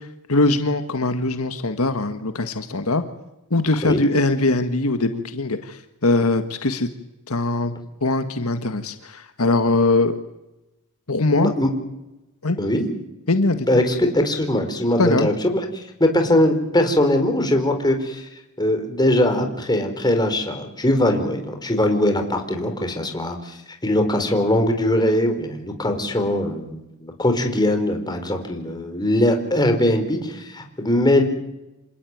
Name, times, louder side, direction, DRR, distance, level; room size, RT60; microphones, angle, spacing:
voice 1, 0.3-3.0 3.5-6.9 7.3-7.7 8.0-10.2 11.1-11.5 12.4-12.6 13.3-13.7 15.0-15.3, left 2 dB, 75° left, 8 dB, 1.7 m, -21 dB
voice 2, 11.3-11.7 12.6-12.8 13.7-15.7 16.0-18.3 18.6-23.6 23.8-31.2, left 1 dB, 20° left, 5 dB, 4.3 m, -21 dB
27.5 x 18.0 x 9.5 m, 0.95 s
head